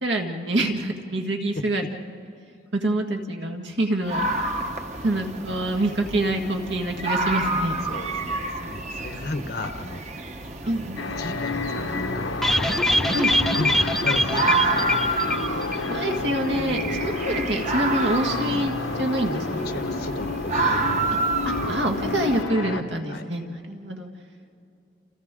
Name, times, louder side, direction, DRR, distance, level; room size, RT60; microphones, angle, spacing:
voice 1, 0.0-2.0 2.7-4.6 5.0-7.7 10.7-11.0 13.1-13.3 15.8-19.8 21.4-24.1, right 1 dB, 70° right, 3 dB, 1.8 m, -26 dB
sound 1, 4.1-22.4, right 2 dB, 35° right, 1.2 m, -29 dB
voice 2, 7.8-10.0 10.6-12.5 13.5-15.0 19.3-19.4 19.6-21.1 23.1-23.2, left 2 dB, 60° left, 7 dB, 0.9 m, -34 dB
sound 2, 11.0-22.8, left 3 dB, 90° left, 1.1 m, -30 dB
sound 3, 12.4-16.2 16.5-16.6, left 1 dB, ahead, 0.6 m, -23 dB
29.0 x 29.0 x 3.8 m, 2.6 s
head